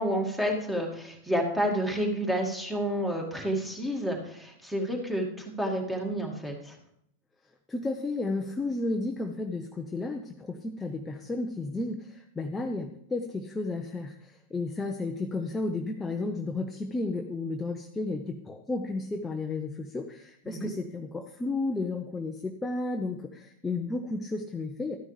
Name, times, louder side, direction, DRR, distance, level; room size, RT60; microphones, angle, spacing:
voice 1, 0.0-6.8 20.5-20.7, equal, 5° right, 1 dB, 2.2 m, -30 dB
voice 2, 7.7-25.0, left 3 dB, 10° left, 4 dB, 0.7 m, -33 dB
13.0 x 9.8 x 3.3 m, 0.74 s
figure-of-eight pair, 90°, 0 cm